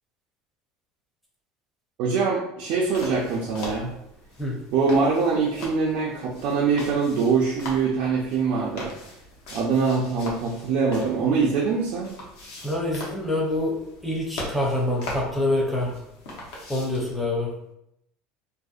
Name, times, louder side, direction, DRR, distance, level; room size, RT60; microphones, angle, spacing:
voice 1, 2.0-3.9 4.7-8.9 9.5-12.2, right 5 dB, 60° right, -4 dB, 0.4 m, -23 dB
sound 1, 2.8-17.1, left 1 dB, 70° left, 0.7 m, -40 dB
voice 2, 12.6-13.7 14.0-15.9 16.7-17.5, left 1 dB, ahead, -3 dB, 0.5 m, -26 dB
2.6 x 2.0 x 2.3 m, 0.81 s
cardioid pair, 155°, 3 cm